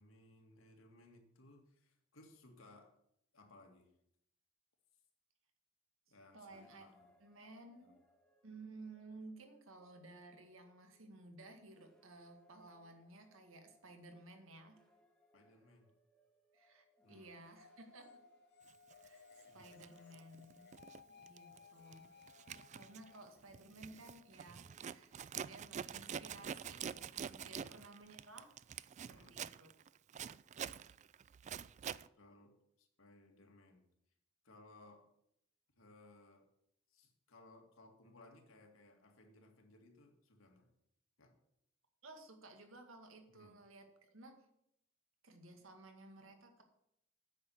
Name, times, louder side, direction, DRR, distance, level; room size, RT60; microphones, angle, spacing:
voice 1, 0.0-2.9 3.3-3.9 6.1-7.1 7.8-7.9 15.3-15.9 17.0-17.3 19.5-19.9 23.7-23.8 27.5-27.8 29.1-29.4 32.2-33.8 34.4-35.1 35.8-36.4 36.9-40.7 41.2-41.3 43.3-43.6, left 2 dB, 75° left, 3 dB, 2.1 m, -62 dB
voice 2, 6.3-6.9 7.2-8.0 8.4-14.8 16.5-18.2 19.0-20.8 21.2-22.1 22.7-28.5 28.9-29.7 42.0-44.5 45.2-46.6, right 2 dB, 70° right, 5 dB, 1.9 m, -56 dB
sound 1, 6.5-25.6, left 1 dB, 5° left, 1.4 m, -74 dB
sound 2, 17.6-25.1, left 5 dB, 55° left, 0.6 m, -62 dB
Zipper (clothing), 18.9-19.1 19.6-21.0 21.3-21.6 21.9-32.1, right 8 dB, 35° right, 0.3 m, -46 dB
9.4 x 6.4 x 8.3 m, 0.77 s
head